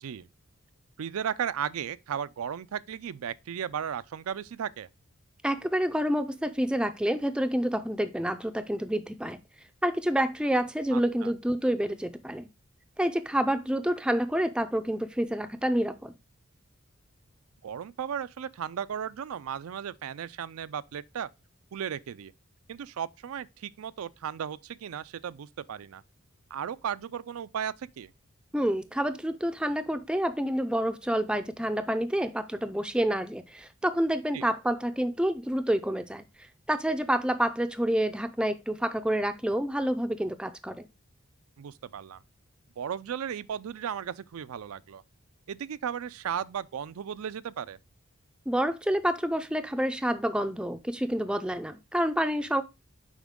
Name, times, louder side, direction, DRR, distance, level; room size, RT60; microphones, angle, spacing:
voice 1, 1.0-4.9 10.9-11.3 17.6-21.3 21.7-22.3 22.7-26.0 26.5-28.1 34.3-34.4 41.6-42.2 42.8-45.0 45.5-47.8, right 8 dB, 90° right, 0.4 m, -35 dB
voice 2, 5.4-9.4 9.8-12.5 13.0-16.1 28.5-36.2 36.7-40.9 48.5-52.6, right 1 dB, 5° right, 0.4 m, -28 dB
7.3 x 5.0 x 3.6 m
head